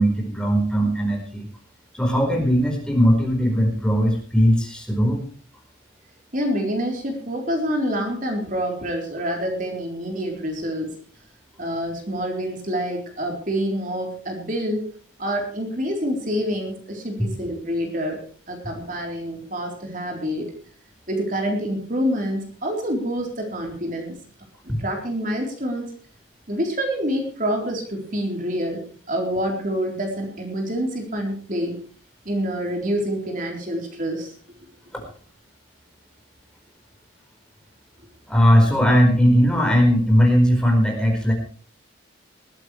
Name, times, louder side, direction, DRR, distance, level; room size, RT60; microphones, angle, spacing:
voice 1, 0.0-1.5 1.9-5.2 24.7-24.8 38.3-41.3, equal, 5° left, 1 dB, 4.7 m, -18 dB
voice 2, 6.3-10.9 11.6-14.8 15.2-18.2 18.5-20.5 21.1-24.2 24.6-26.0 26.5-28.8 29.1-31.7 32.3-34.3, equal, 40° right, 1 dB, 4.0 m, -27 dB
20.5 x 15.5 x 3.3 m, 0.43 s
head